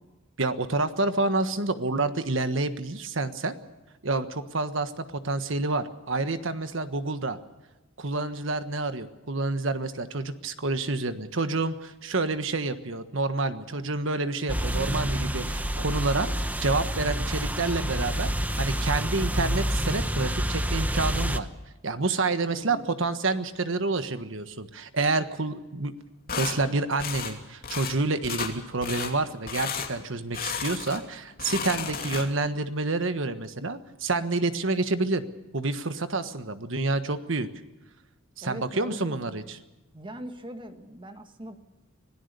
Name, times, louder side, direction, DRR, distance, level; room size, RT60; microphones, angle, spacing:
voice 1, 0.4-3.5 4.0-7.4 8.0-21.5 21.8-25.9 26.4-35.2 35.5-37.5 38.4-39.4, right 3 dB, 65° right, 10 dB, 1.4 m, -28 dB
sound 1, 14.5-21.4, equal, 10° right, 0.9 m, -28 dB
voice 2, 22.5-22.9 36.2-36.5 38.4-39.5 39.9-41.6, right 1 dB, 25° right, 7 dB, 1.6 m, -42 dB
sound 2, 26.3-26.6 27.0-27.3 27.6-28.0 28.2-28.5 28.8-29.1 29.5-29.9 30.3-31.0 31.3-32.5, left 6 dB, 45° left, 2.9 m, -33 dB
25.5 x 17.5 x 6.8 m, 1.1 s
head